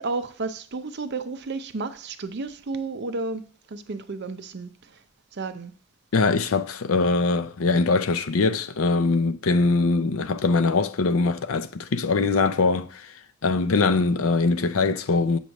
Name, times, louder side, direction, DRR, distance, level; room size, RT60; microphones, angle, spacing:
voice 1, 0.0-3.4 3.7-4.7 5.3-5.7, right 3 dB, 50° right, 0.6 m, -32 dB
voice 2, 6.1-13.1 13.4-15.4, left 3 dB, 75° left, 0.5 m, -22 dB
7.9 x 3.1 x 6.3 m
head